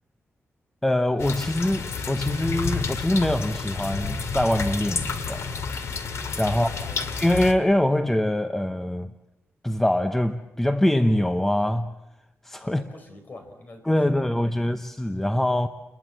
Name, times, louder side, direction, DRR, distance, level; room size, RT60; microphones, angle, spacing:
voice 1, 0.8-5.5 6.4-6.7 7.2-9.1 9.6-11.9 12.4-12.8 13.9-15.7, left 1 dB, 5° left, 0.8 m, -23 dB
sound 1, 1.2-7.5, left 5 dB, 85° left, 2.3 m, -30 dB
voice 2, 6.5-7.2 12.6-14.5, left 2 dB, 40° left, 5.2 m, -45 dB
29.5 x 21.5 x 7.6 m
wide cardioid pair, 160°, 5 cm